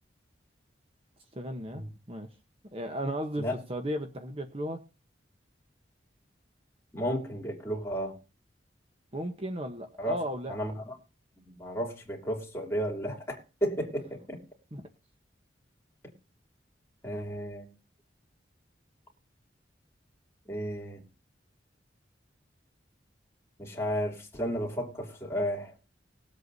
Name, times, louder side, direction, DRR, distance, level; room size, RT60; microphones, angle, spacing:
voice 1, 1.3-2.3 2.7-4.8 9.1-10.5 14.7-14.8, equal, 30° right, 5 dB, 1.0 m, -35 dB
voice 2, 6.9-8.2 10.0-10.2 10.5-11.0 11.4-14.4 17.0-17.7 20.5-21.0 23.6-25.7, equal, 15° left, -2 dB, 3.0 m, -33 dB
21.0 x 8.0 x 2.7 m, 0.31 s
head